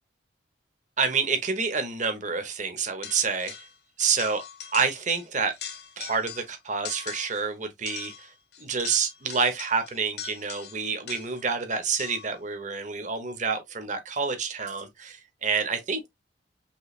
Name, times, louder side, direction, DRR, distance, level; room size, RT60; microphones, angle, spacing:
voice 1, 1.0-3.5 4.0-4.4 4.7-5.5 6.0-8.3 8.6-16.1, right 5 dB, 45° right, 1.0 m, -28 dB
sound 1, 3.0-3.7 4.0-5.2 5.5-6.5 6.8-7.4 7.9-11.5 12.0-12.4, left 8 dB, 65° left, 1.0 m, -41 dB
5.5 x 3.2 x 2.4 m
head